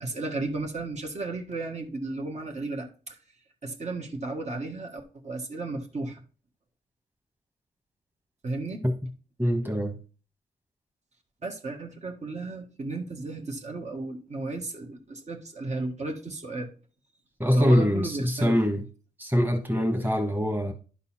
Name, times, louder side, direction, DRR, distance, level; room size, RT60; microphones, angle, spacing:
voice 1, 0.0-3.2 3.6-6.2 8.4-8.8 11.4-16.7 17.5-18.5, right 2 dB, 45° right, 1.6 m, -34 dB
voice 2, 9.4-9.9 17.4-18.8 19.2-20.7, equal, 10° right, 1.6 m, -24 dB
11.0 x 4.1 x 4.2 m
cardioid pair, 75°, 16 cm